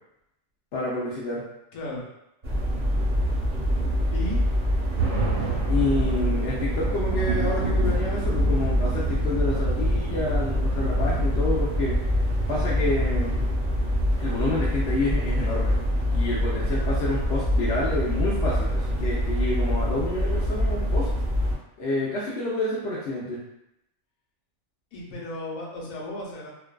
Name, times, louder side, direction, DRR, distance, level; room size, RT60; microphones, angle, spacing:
voice 1, 0.7-1.4 5.7-12.0 12.5-13.5 14.2-15.8 16.1-21.1 21.8-23.4, left 2 dB, 65° left, -7 dB, 0.7 m, -28 dB
voice 2, 1.7-2.1 4.1-4.4 24.9-26.5, left 1 dB, 90° left, -3 dB, 1.1 m, -34 dB
sound 1, 2.4-21.5, equal, 40° right, 0.5 m, -25 dB
sound 2, 4.2-15.8, right 3 dB, 85° right, 1.1 m, -33 dB
2.5 x 2.2 x 2.2 m, 0.85 s
omnidirectional pair, 1.4 m